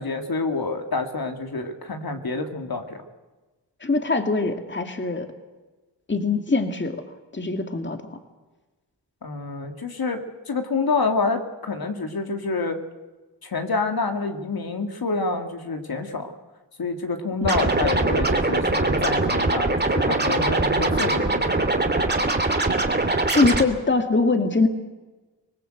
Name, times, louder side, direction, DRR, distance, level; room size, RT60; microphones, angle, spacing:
voice 1, 0.0-3.0 9.2-12.8 13.4-16.3 16.8-21.6, left 3 dB, 55° left, 5 dB, 2.6 m, -27 dB
voice 2, 3.8-5.3 6.1-7.0 7.3-8.2 17.4-17.7 23.3-24.7, left 3 dB, 25° left, 6 dB, 2.2 m, -23 dB
Scratching (performance technique), 17.4-23.6, right 2 dB, 20° right, 2.8 m, -22 dB
25.0 x 20.0 x 8.0 m, 1.2 s
cardioid pair, 80°, 44 cm